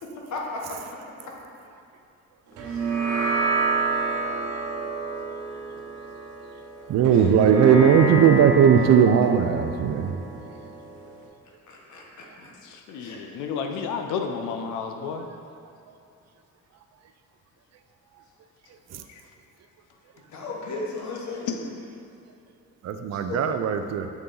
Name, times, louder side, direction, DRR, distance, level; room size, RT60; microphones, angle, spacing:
voice 1, 0.0-0.8 2.6-2.8 7.1-7.3 11.7-12.5 13.0-13.2 20.3-21.7 23.1-23.4, left 3 dB, 70° left, -2 dB, 1.2 m, -35 dB
sound 1, 2.6-11.3, right 3 dB, 80° right, 1.0 m, -29 dB
voice 2, 6.9-10.2 18.9-19.0 22.8-24.1, right 7 dB, 60° right, 8 dB, 0.5 m, -18 dB
voice 3, 12.6-15.3 19.1-19.2 21.5-21.6, left 6 dB, 90° left, 5 dB, 0.5 m, -31 dB
7.2 x 3.8 x 3.7 m, 2.7 s
cardioid pair, 90°, 30 cm